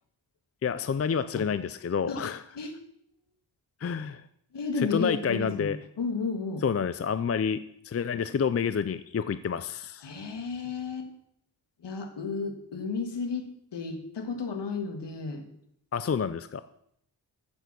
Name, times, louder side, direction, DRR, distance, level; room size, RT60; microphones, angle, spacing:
voice 1, 0.6-2.4 3.8-4.2 4.8-5.8 6.6-10.1 15.9-16.6, left 6 dB, 35° left, 12 dB, 0.5 m, -29 dB
voice 2, 4.5-6.6 10.0-11.1 11.8-15.5, left 4 dB, 85° left, 6 dB, 1.9 m, -33 dB
15.0 x 7.2 x 6.1 m, 0.73 s
wide cardioid pair, 115°, 41 cm